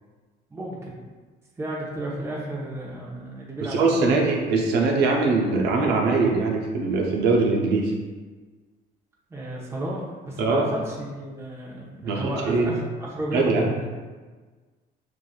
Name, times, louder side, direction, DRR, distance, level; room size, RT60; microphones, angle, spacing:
voice 1, 0.5-1.0 1.6-4.3 9.3-13.9, right 1 dB, 15° right, -5 dB, 0.9 m, -33 dB
voice 2, 3.6-7.9 10.4-10.7 12.0-12.7 13.3-13.7, right 3 dB, 80° right, 0 dB, 0.7 m, -22 dB
6.0 x 2.5 x 2.3 m, 1.4 s
cardioid pair, 110°, 17 cm